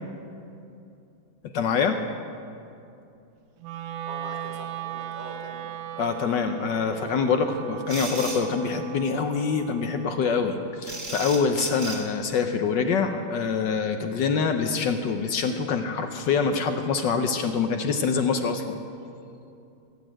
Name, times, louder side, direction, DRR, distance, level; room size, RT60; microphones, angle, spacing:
voice 1, 1.5-2.0 6.0-18.8, left 5 dB, 70° left, 6 dB, 1.3 m, -25 dB
Wind instrument woodwind instrument, 3.6-13.8, right 9 dB, 65° right, 1.1 m, -39 dB
voice 2, 4.0-5.7, right 1 dB, 25° right, -1 dB, 1.8 m, -42 dB
sound 1, 7.9-8.5 10.8-12.1, right 3 dB, 40° right, 2.0 m, -35 dB
17.0 x 8.3 x 8.8 m, 2.6 s
omnidirectional pair, 2.2 m